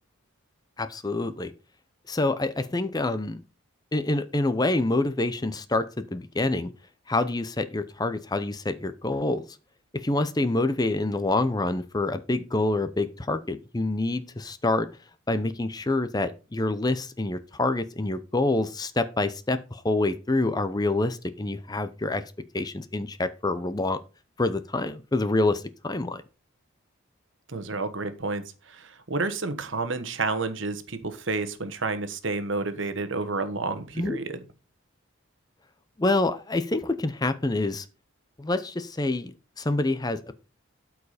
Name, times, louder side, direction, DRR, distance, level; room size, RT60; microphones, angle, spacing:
voice 1, 0.8-1.5 2.1-3.4 3.9-5.9 6.1-6.7 7.1-9.5 9.9-14.9 15.3-22.2 22.5-24.0 24.4-26.2 34.0-34.2 36.0-37.8 38.4-40.3, left 2 dB, 20° left, 12 dB, 0.6 m, -26 dB
voice 2, 27.5-28.4 28.7-34.4, right 3 dB, 60° right, 10 dB, 1.2 m, -30 dB
12.5 x 4.8 x 4.9 m, 0.32 s
head